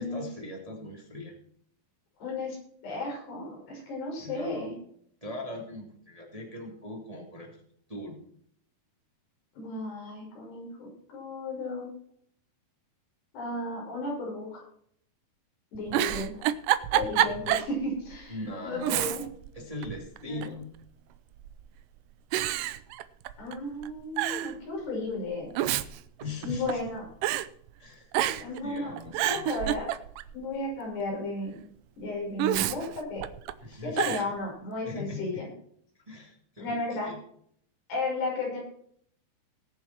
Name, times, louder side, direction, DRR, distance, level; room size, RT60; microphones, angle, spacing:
voice 1, 0.0-1.3 4.2-4.8 5.2-7.6 7.9-8.2 18.3-19.0 19.5-20.7 26.2-26.8 27.8-28.1 28.4-29.5 33.6-34.2 34.8-35.5 36.1-37.2, left 2 dB, 10° right, -1 dB, 2.1 m, -40 dB
voice 2, 2.2-2.6 2.8-4.7 9.6-11.9 13.3-14.6 15.7-16.4 16.9-18.4 18.6-19.2 20.2-20.5 23.4-25.5 26.4-27.0 28.4-28.9 29.2-29.9 30.3-31.6 32.0-33.2 33.8-35.5 36.6-37.1 37.9-38.6, left 2 dB, 90° left, -3 dB, 8.1 m, -34 dB
Giggle, 15.7-17.7 18.1-18.2 18.8-19.5 19.8-20.6 21.4-21.8 22.3-23.5 23.8-23.9 24.2-24.5 25.3-26.9 27.2-27.5 28.1-28.6 29.0-30.3 32.4-33.5 34.0-34.3, right 13 dB, 90° right, 1.9 m, -28 dB
20.5 x 7.1 x 4.5 m, 0.64 s
omnidirectional pair, 4.6 m